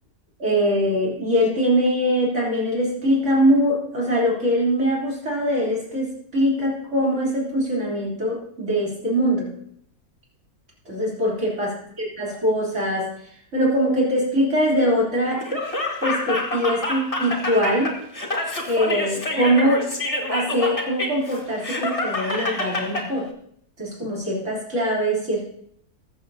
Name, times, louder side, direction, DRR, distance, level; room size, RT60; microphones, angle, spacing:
voice 1, 0.4-9.5 10.9-11.7 12.2-13.1 13.5-15.6 16.0-17.9 18.7-19.9 20.3-23.3 23.8-25.4, equal, 45° right, -5 dB, 3.9 m, -22 dB
Laughter, 15.4-23.1, left 2 dB, 20° left, 1.8 m, -27 dB
20.5 x 7.9 x 2.8 m, 0.67 s
omnidirectional pair, 1.7 m